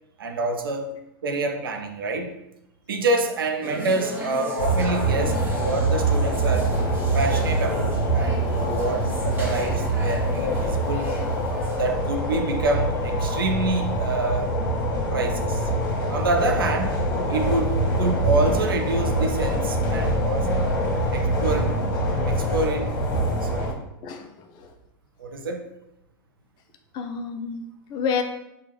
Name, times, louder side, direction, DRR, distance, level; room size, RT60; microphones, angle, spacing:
voice 1, 0.2-0.9 1.2-2.3 2.9-6.7 7.1-11.1 11.8-14.5 15.1-15.6 16.1-17.0 17.3-20.5 21.1-21.7 22.3-22.9 23.4-23.7 25.2-25.6, right 2 dB, 85° right, 5 dB, 0.5 m, -27 dB
sound 1, 3.6-11.8, equal, 15° right, 0.9 m, -37 dB
sound 2, 4.6-23.7, right 1 dB, 60° left, 1.0 m, -24 dB
voice 2, 24.0-24.7 26.9-27.6 27.9-28.2, left 6 dB, 40° left, 6 dB, 0.5 m, -29 dB
3.7 x 2.3 x 3.1 m, 0.86 s
hypercardioid pair, 105°, 12 cm